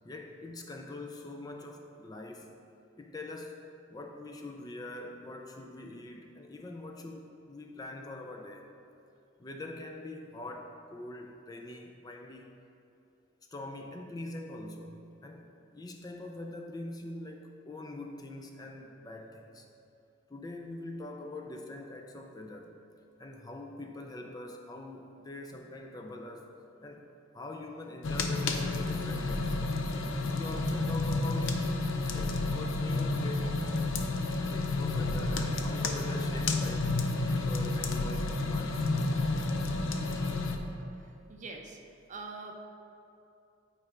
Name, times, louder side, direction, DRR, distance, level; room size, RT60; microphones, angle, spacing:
voice 1, 0.0-2.5 3.0-3.6 3.9-8.7 9.4-12.6 13.5-19.7 20.3-22.7 23.2-26.5 26.8-27.0 27.3-29.6 30.3-31.6 32.1-33.5 34.5-37.0 37.3-38.9, left 2 dB, 20° left, 2 dB, 0.3 m, -43 dB
sound 1, 28.0-40.6, left 2 dB, 90° left, 0.5 m, -30 dB
voice 2, 41.3-41.8 42.1-42.7, right 3 dB, 40° right, 3 dB, 0.6 m, -43 dB
8.8 x 3.3 x 4.9 m, 2.7 s
head